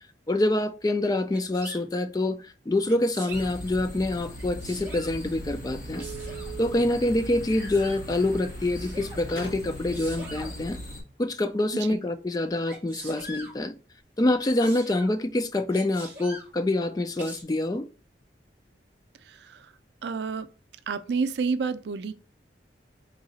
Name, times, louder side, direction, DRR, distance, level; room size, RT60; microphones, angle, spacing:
voice 1, 0.3-6.0 6.6-10.8 11.2-13.7 14.2-17.8, left 1 dB, 20° left, 0.4 m, -26 dB
Sneeze, 1.3-1.8 2.9-3.5 4.3-5.2 6.0-6.5 7.5-8.0 8.7-9.2 9.9-10.5 12.7-13.5 14.4-15.1 15.7-16.5 17.2-17.4, right 1 dB, 15° right, 1.7 m, -43 dB
sound 1, 3.3-11.0, left 1 dB, 45° left, 1.7 m, -39 dB
sound 2, 5.3-10.0, right 4 dB, 65° left, 2.4 m, -44 dB
voice 2, 19.3-19.7 20.0-20.5 20.9-22.1, right 5 dB, 75° right, 0.4 m, -29 dB
4.0 x 2.8 x 4.0 m
head